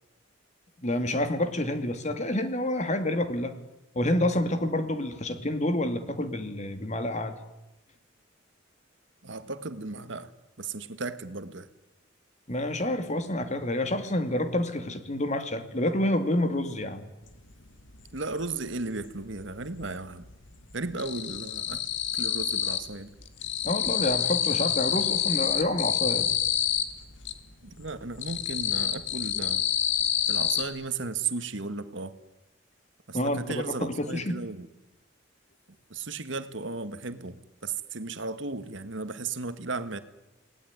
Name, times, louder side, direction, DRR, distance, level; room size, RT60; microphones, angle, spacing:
voice 1, 0.8-3.5 3.9-7.4 12.5-17.1 23.6-26.4 33.1-34.4, left 1 dB, 35° left, 2.3 m, -28 dB
voice 2, 9.2-10.3 10.6-11.7 18.1-20.2 20.7-21.8 22.1-23.1 27.6-29.6 30.3-32.2 33.1-34.7 35.9-40.0, right 3 dB, 70° right, 1.7 m, -35 dB
sound 1, 17.4-17.5 17.8-19.1 19.3-20.0 20.3-23.0 23.2-27.4 27.8-30.6, left 9 dB, 65° left, 2.3 m, -28 dB
28.5 x 19.0 x 9.6 m
head